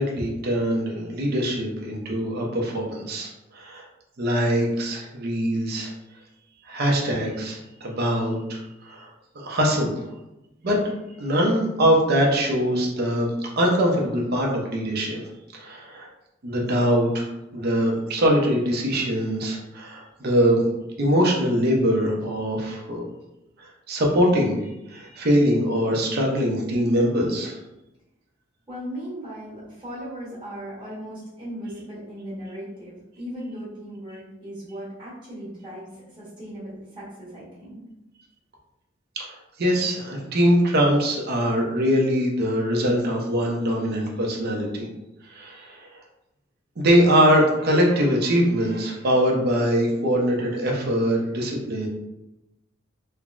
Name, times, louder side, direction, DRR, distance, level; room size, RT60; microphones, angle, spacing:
voice 1, 0.0-3.8 4.2-5.9 6.7-9.1 9.4-10.0 10.6-10.8 11.2-15.2 15.5-16.1 16.4-17.3 17.5-20.7 21.0-23.0 23.6-27.6 39.2-44.9 45.3-45.9 46.8-51.9, equal, 55° right, -1 dB, 0.5 m, -22 dB
voice 2, 28.7-37.8, equal, 25° right, -10 dB, 1.3 m, -37 dB
3.3 x 2.0 x 2.4 m, 0.94 s
head